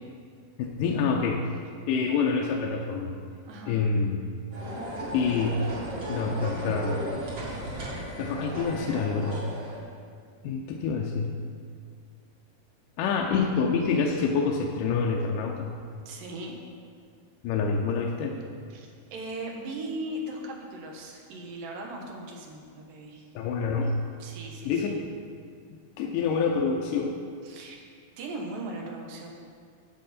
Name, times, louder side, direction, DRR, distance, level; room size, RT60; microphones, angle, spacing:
voice 1, 0.6-1.5 1.9-3.1 3.7-4.2 5.1-5.7 6.1-7.0 8.2-9.4 10.4-11.4 13.0-15.8 17.4-18.4 23.4-24.0 24.7-25.0 26.0-27.2, left 5 dB, 80° left, 0 dB, 2.2 m, -27 dB
voice 2, 3.5-3.8 16.1-16.5 18.7-23.3 24.2-25.0 27.4-27.8 28.2-29.3, right 1 dB, 80° right, 1 dB, 2.9 m, -38 dB
sound 1, 4.5-9.8, right 1 dB, 45° right, 3.0 m, -35 dB
12.0 x 7.4 x 4.2 m, 2.1 s
omnidirectional pair, 3.9 m